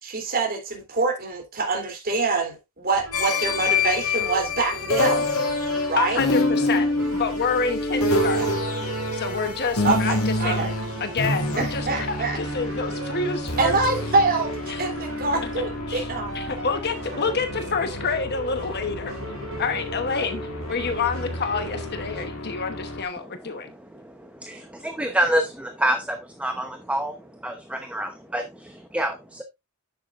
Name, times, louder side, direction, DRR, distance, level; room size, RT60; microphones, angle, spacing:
voice 1, 0.0-5.3 5.9-6.2 8.3-8.5 9.8-10.7 11.6-12.4 13.6-16.3, right 3 dB, 45° right, 3.3 m, -25 dB
sound 1, 2.9-22.3, right 1 dB, 60° right, 3.9 m, -38 dB
sound 2, 3.1-23.0, left 2 dB, 85° left, 2.5 m, -28 dB
voice 2, 6.0-6.9 7.1-8.6 9.1-10.7 11.0-13.8 14.7-14.8 15.9-16.1 16.3-19.1 19.6-20.4 20.7-23.7, left 5 dB, 50° left, 1.0 m, -28 dB
voice 3, 23.2-29.4, right 1 dB, 5° right, 0.9 m, -28 dB
10.5 x 7.7 x 2.5 m
head